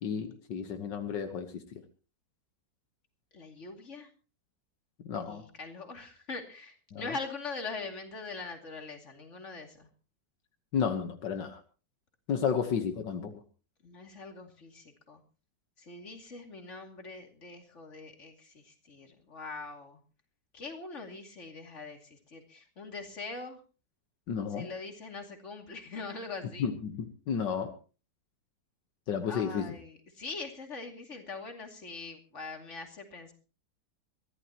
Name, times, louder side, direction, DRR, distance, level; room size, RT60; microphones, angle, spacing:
voice 1, 0.0-1.8 5.0-5.4 6.9-7.1 10.7-11.6 12.3-13.4 24.3-24.7 26.6-27.7 29.1-29.8, left 7 dB, 75° left, 7 dB, 1.9 m, -32 dB
voice 2, 3.3-4.1 5.2-9.9 13.8-15.2 15.8-20.0 20.5-23.6 24.5-26.7 29.3-33.3, left 3 dB, 40° left, 4 dB, 2.9 m, -42 dB
23.0 x 15.0 x 2.9 m, 0.36 s
omnidirectional pair, 1.9 m